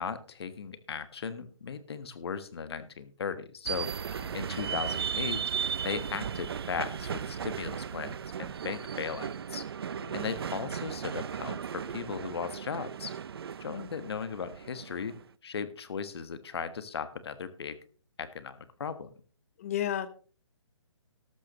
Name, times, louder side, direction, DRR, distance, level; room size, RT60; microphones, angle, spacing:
voice 1, 0.0-4.1 4.3-5.4 5.8-9.6 10.1-13.1 13.6-15.2 15.4-17.8 18.2-19.1, left 6 dB, 55° left, 12 dB, 1.4 m, -37 dB
sound 1, 3.7-15.2, right 7 dB, 50° right, 0.5 m, -36 dB
voice 2, 9.9-10.3 19.6-20.1, left 11 dB, 25° left, 13 dB, 1.0 m, -33 dB
13.0 x 12.5 x 3.0 m, 0.40 s
hypercardioid pair, 165°, 16 cm